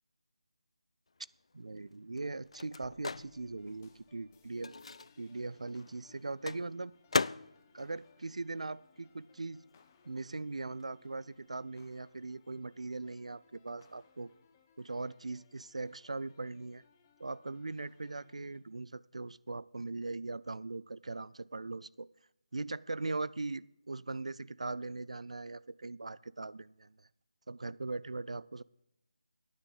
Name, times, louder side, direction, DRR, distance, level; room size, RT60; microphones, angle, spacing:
Microwave oven, 1.2-9.3 9.6-11.5, left 4 dB, 60° left, 0.3 m, -41 dB
voice 1, 1.5-4.7 5.2-6.9 7.7-9.6 10.1-14.3 14.8-16.8 17.2-22.1 22.5-27.1 27.5-28.6, right 3 dB, 75° right, 20 dB, 0.4 m, -40 dB
sound 1, 2.4-18.6, left 6 dB, 20° left, 0.9 m, -67 dB
15.5 x 9.7 x 4.0 m, 0.86 s
figure-of-eight pair, 160°, 4 cm